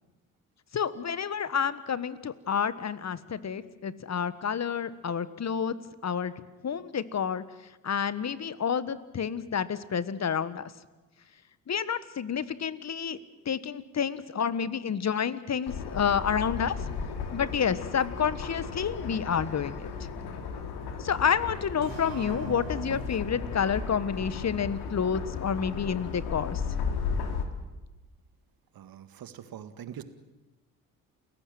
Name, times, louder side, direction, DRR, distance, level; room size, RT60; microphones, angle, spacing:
voice 1, 0.7-5.7 6.0-6.3 6.6-7.4 7.8-10.7 11.7-13.2 13.4-16.9 17.3-20.1 21.0-26.6, left 7 dB, 40° left, 16 dB, 1.4 m, -29 dB
sound 1, 15.7-27.4, left 5 dB, 65° left, 2.7 m, -35 dB
sound 2, 21.8-25.4, right 4 dB, 75° right, 3.2 m, -43 dB
voice 2, 28.8-30.0, right 9 dB, 55° right, 11 dB, 1.8 m, -43 dB
28.5 x 15.5 x 7.7 m, 1.1 s
hypercardioid pair, 50°, 42 cm